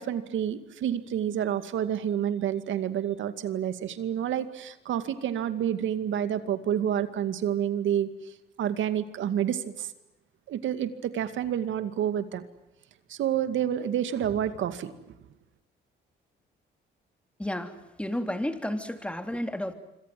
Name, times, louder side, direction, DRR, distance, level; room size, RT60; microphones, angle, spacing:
voice 1, 0.0-8.1 8.6-9.9 10.5-12.4 13.1-14.9, right 10 dB, 75° right, 11 dB, 2.3 m, -29 dB
voice 2, 17.4-19.7, left 1 dB, 5° left, 8 dB, 3.2 m, -32 dB
26.0 x 26.0 x 7.8 m, 0.92 s
cardioid pair, 90°, 20 cm